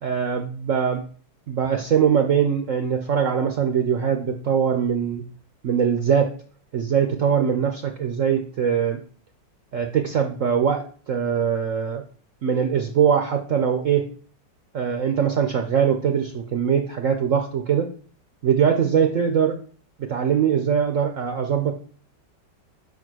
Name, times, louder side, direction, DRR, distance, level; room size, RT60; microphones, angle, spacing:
voice 1, 0.0-1.0 1.5-5.2 5.6-6.4 6.7-9.0 9.7-12.0 12.4-14.1 14.7-17.9 18.4-19.5 20.0-21.7, right 7 dB, 60° right, 5 dB, 0.9 m, -22 dB
5.9 x 4.8 x 6.1 m, 0.42 s
omnidirectional pair, 2.0 m